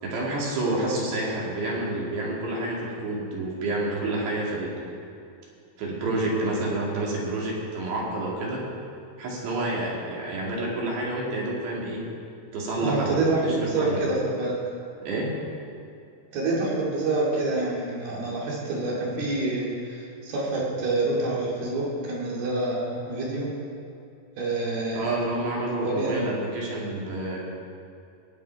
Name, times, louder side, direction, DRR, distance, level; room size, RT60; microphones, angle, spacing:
voice 1, 0.0-4.7 5.8-8.6 9.2-12.0 12.5-14.0 15.0-15.3 24.9-27.4, right 2 dB, 80° right, -4 dB, 4.7 m, -29 dB
voice 2, 12.8-14.6 16.3-23.5 24.4-25.1 25.8-26.2, right 2 dB, 65° right, -5 dB, 4.3 m, -27 dB
19.0 x 8.9 x 4.7 m, 2.6 s
omnidirectional pair, 4.9 m